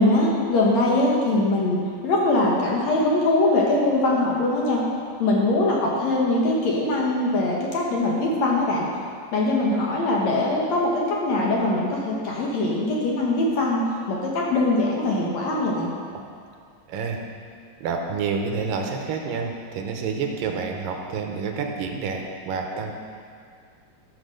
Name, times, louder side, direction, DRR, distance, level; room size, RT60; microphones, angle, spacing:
voice 1, 0.0-4.8 5.2-8.9 9.3-13.8 14.1-15.9, left 2 dB, 60° left, -3 dB, 2.3 m, -22 dB
voice 2, 16.9-17.2 17.8-22.9, right 5 dB, 80° right, 3 dB, 2.5 m, -28 dB
12.5 x 5.8 x 6.5 m, 2.2 s
omnidirectional pair, 4.0 m